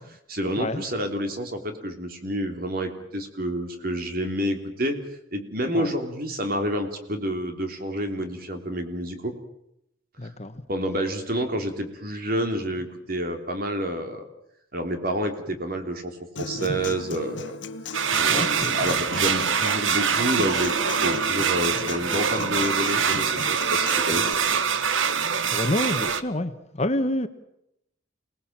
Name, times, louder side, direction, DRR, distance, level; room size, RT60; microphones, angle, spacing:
voice 1, 0.3-5.0 5.3-9.3 10.2-10.3 10.7-14.2 14.7-17.6 18.2-20.7 21.0-24.2, right 1 dB, 50° right, 3.5 m, -29 dB
voice 2, 10.2-10.5 18.3-19.0 25.5-27.3, left 1 dB, 35° left, 1.3 m, -28 dB
Human voice / Acoustic guitar, 16.4-24.3, left 3 dB, 70° left, 1.3 m, -36 dB
sound 1, 17.9-26.2, right 6 dB, 85° right, 1.3 m, -24 dB
28.0 x 19.5 x 7.5 m
head